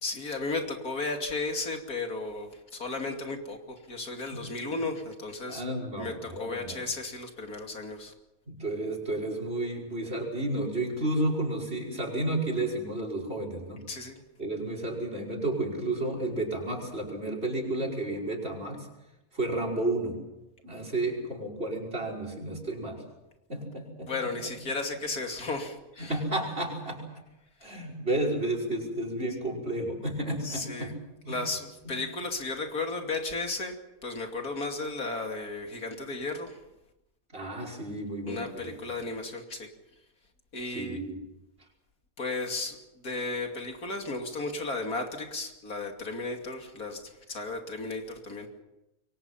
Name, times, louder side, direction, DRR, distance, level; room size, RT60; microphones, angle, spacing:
voice 1, 0.0-5.6 6.0-8.1 13.9-14.2 24.1-26.2 30.4-30.9 31.3-33.7 34.0-36.6 38.3-39.7 40.5-41.0 42.2-48.5, left 3 dB, 90° left, 3 dB, 3.2 m, -34 dB
voice 2, 4.3-4.9 5.5-6.8 8.5-13.8 14.4-18.9 19.3-20.2 20.6-23.0 23.5-24.1 24.4-24.5 26.0-27.1 27.6-30.9 31.2-31.4 31.8-32.0 37.3-38.7 40.7-41.2, right 1 dB, 45° right, 2 dB, 5.8 m, -32 dB
28.0 x 23.0 x 5.8 m, 0.95 s
omnidirectional pair, 1.5 m